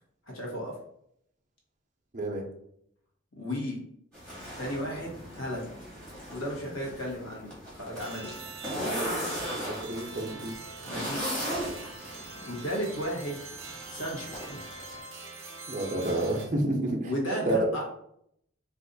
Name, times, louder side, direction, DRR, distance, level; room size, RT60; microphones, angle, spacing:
voice 1, 0.3-0.7 3.4-3.8 4.6-5.7 6.3-8.3 10.8-11.2 12.4-13.4 13.9-14.6 17.0-17.8, equal, 75° left, -2 dB, 1.0 m, -34 dB
voice 2, 2.1-2.4 9.8-10.5 15.7-17.1 17.4-17.6, right 1 dB, 35° right, 1 dB, 0.6 m, -29 dB
sound 1, 4.1-15.0, equal, 5° left, 1.1 m, -38 dB
sound 2, 8.0-16.5, right 3 dB, 75° right, 0.7 m, -43 dB
2.5 x 2.3 x 3.9 m, 0.71 s
head